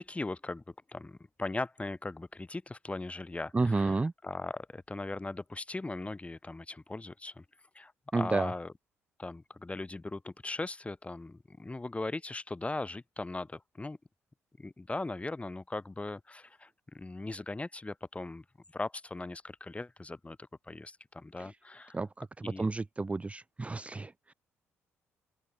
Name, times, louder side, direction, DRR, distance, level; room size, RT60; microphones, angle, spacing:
voice 1, 0.0-7.4 7.7-8.7 9.2-14.0 14.6-18.4 18.7-20.4 20.7-22.0 22.4-22.7, left 2 dB, 20° left, 6.6 m, -39 dB
voice 2, 3.5-4.1 8.1-8.5 21.4-21.5 21.9-22.3 22.6-24.3, right 3 dB, 20° right, 0.6 m, -31 dB
open air
figure-of-eight pair, 45°, 7 cm